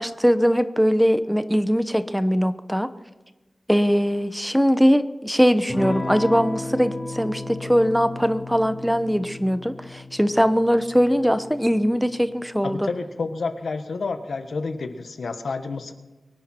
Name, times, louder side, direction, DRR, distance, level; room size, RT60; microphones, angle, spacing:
voice 1, 0.0-2.9 3.7-12.9, equal, ahead, 11 dB, 0.8 m, -21 dB
Electric guitar / Strum, 5.7-14.0, left 2 dB, 25° left, 3.1 m, -35 dB
voice 2, 12.6-15.9, left 4 dB, 80° left, 8 dB, 1.3 m, -29 dB
23.5 x 10.5 x 4.4 m, 1.1 s
wide cardioid pair, 115°, 0 cm